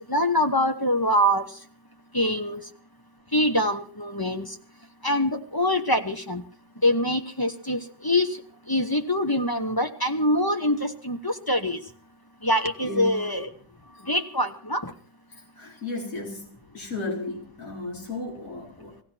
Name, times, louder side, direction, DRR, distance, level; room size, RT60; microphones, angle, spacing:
voice 1, 0.1-1.4 2.1-2.6 3.3-4.5 5.0-6.4 6.8-8.4 8.7-11.8 12.4-13.5 14.0-14.9, left 1 dB, 15° left, 6 dB, 0.8 m, -24 dB
voice 2, 12.8-13.3 15.3-16.5 16.7-19.0, left 2 dB, 45° left, -1 dB, 4.5 m, -34 dB
18.0 x 16.0 x 4.4 m, 0.42 s
omnidirectional pair, 2.0 m